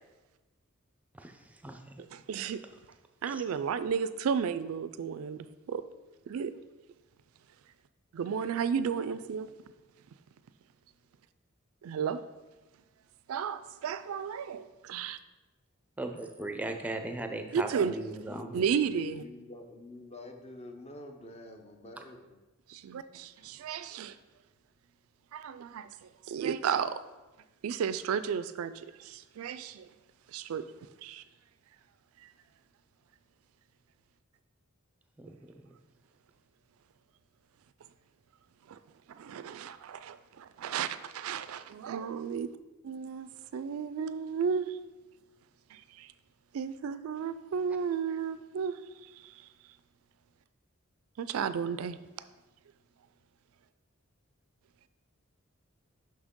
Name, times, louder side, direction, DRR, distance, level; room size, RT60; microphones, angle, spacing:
voice 1, 1.1-2.0 3.2-3.4 16.0-18.7 35.2-35.5, right 2 dB, 5° right, 5 dB, 0.5 m, -38 dB
voice 2, 2.1-2.6 3.2-5.8 6.3-6.5 8.1-9.5 11.8-12.2 13.3-15.2 17.5-17.9 18.5-19.2 22.7-24.2 25.3-26.9 27.6-29.9 30.3-30.7 31.0-31.2 32.2-32.3 38.7-38.8 39.1-42.5 42.8-44.8 45.7-46.1 46.5-49.3 51.2-52.0, right 7 dB, 85° right, 13 dB, 0.3 m, -33 dB
voice 3, 19.1-22.4 23.4-23.6, left 2 dB, 30° left, 5 dB, 0.7 m, -48 dB
6.1 x 5.8 x 3.7 m, 1.1 s
head